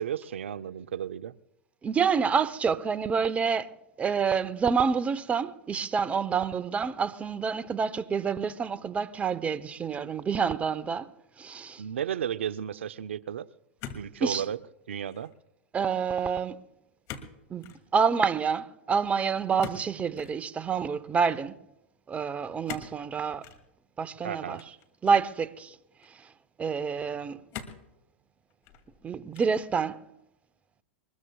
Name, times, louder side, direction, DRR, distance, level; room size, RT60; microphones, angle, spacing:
voice 1, 0.0-1.3 11.8-13.5 14.0-14.6 14.9-15.3 24.2-24.6, right 9 dB, 80° right, 0.6 m, -33 dB
voice 2, 1.8-3.7 4.0-11.1 11.4-11.8 14.2-14.4 15.7-16.6 17.5-17.6 17.9-21.6 22.1-23.5 24.0-24.6 25.0-25.8 26.2-26.3 26.6-27.4 29.0-30.0, right 6 dB, 20° right, 0.9 m, -28 dB
sound 1, 13.8-14.6 14.9-15.3 17.1-17.3 17.6-17.8 19.6-20.4 22.7-23.0 23.4-23.6 24.6-25.3 26.0-26.1 27.5-27.9 28.5-29.0 29.3-29.7, left 8 dB, 45° left, 2.5 m, -42 dB
23.0 x 21.0 x 2.3 m
hypercardioid pair, 105°, 6 cm